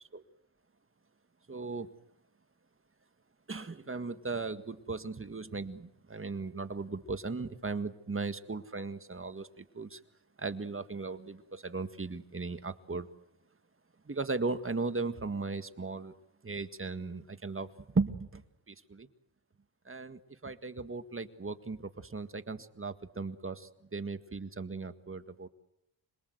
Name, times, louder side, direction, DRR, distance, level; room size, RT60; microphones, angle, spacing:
voice 1, 1.5-1.9 3.5-10.0 10.4-13.1 14.1-16.1 16.4-19.1 19.9-25.5, right 3 dB, 25° right, 10 dB, 1.8 m, -37 dB
26.5 x 22.0 x 8.0 m, 0.83 s
cardioid pair, 75°, 49 cm